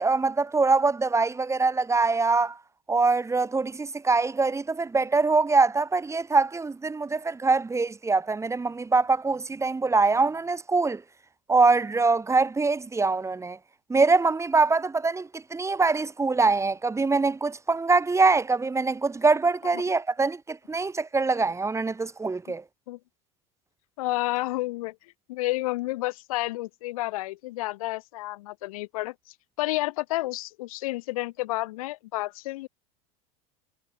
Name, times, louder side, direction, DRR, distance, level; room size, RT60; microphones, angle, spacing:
voice 1, 0.0-2.6 2.9-11.0 11.5-13.6 13.9-22.6, right 3 dB, 15° right, 1.9 m, -23 dB
voice 2, 24.0-25.0 25.3-29.1 29.6-32.7, left 19 dB, 70° left, 1.5 m, -30 dB
hypercardioid pair, 85°, 19 cm